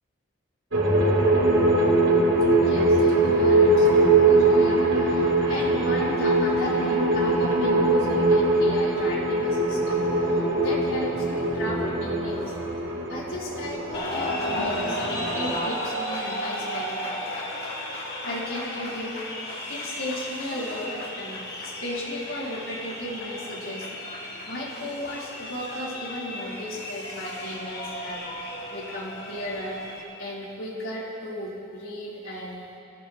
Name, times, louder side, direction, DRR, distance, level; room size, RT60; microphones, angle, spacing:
sound 1, 0.7-15.5, right 2 dB, 80° right, 4.1 m, -22 dB
voice 1, 2.6-12.5 13.1-17.2 18.2-19.1 19.4-23.9 24.2-28.2 28.7-29.8 30.2-32.7, left 1 dB, 90° left, -6 dB, 3.9 m, -35 dB
sound 2, 13.9-30.0, left 1 dB, 50° left, 2.4 m, -34 dB
23.5 x 16.0 x 3.1 m, 2.7 s
head